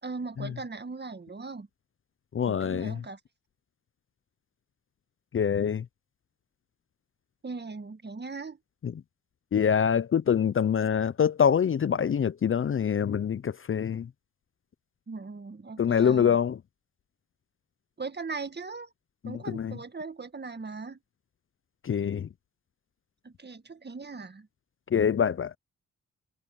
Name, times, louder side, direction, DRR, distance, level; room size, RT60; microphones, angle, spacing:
voice 1, 0.0-1.7 2.4-3.2 7.4-8.6 15.1-16.4 18.0-18.9 19.2-21.0 23.2-24.5, right 4 dB, 30° right, 1.7 m, -39 dB
voice 2, 2.3-2.9 5.3-5.8 8.8-8.9 9.5-14.1 15.8-16.6 19.2-19.7 21.8-22.3 24.9-25.5, left 7 dB, 40° left, 0.6 m, -25 dB
cardioid pair, 55°, 32 cm